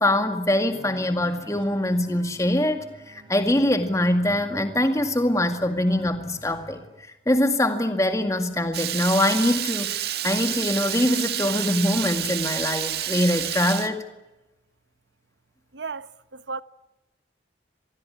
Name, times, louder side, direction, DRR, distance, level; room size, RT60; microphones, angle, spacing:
voice 1, 0.0-6.8 7.3-14.0, left 1 dB, 15° left, 2.0 m, -23 dB
sound 1, 0.7-6.9, right 1 dB, 25° right, 4.8 m, -47 dB
Water tap faucet / Liquid, 8.7-13.9, right 11 dB, 60° right, 1.9 m, -29 dB
voice 2, 15.7-16.6, right 4 dB, 85° right, 1.0 m, -34 dB
26.0 x 20.5 x 9.7 m
head